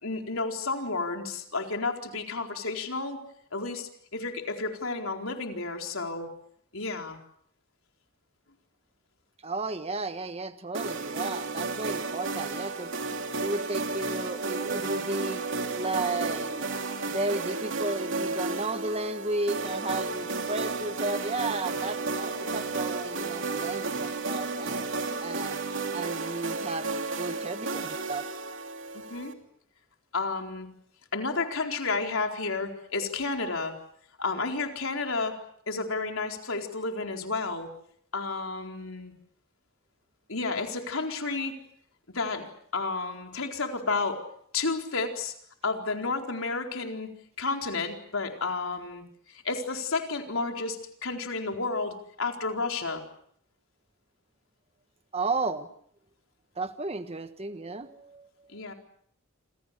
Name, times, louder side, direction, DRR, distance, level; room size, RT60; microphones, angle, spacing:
voice 1, 0.0-3.2 3.5-6.3 6.7-7.2 28.9-29.3 30.1-30.7 31.1-33.8 34.2-35.4 35.7-37.7 38.1-39.1 40.3-41.6 42.1-44.2 44.5-45.3 45.6-47.1 47.4-53.0 58.5-58.7, left 3 dB, 75° left, 3 dB, 4.3 m, -31 dB
voice 2, 9.4-12.9 13.4-15.4 15.8-16.6 17.1-24.9 25.2-25.6 25.9-26.9 27.1-28.2 55.1-55.7 56.6-58.3, right 2 dB, 30° right, 9 dB, 1.3 m, -33 dB
sound 1, 10.7-29.3, right 3 dB, 65° right, 3.1 m, -32 dB
28.0 x 27.0 x 6.8 m, 0.65 s
head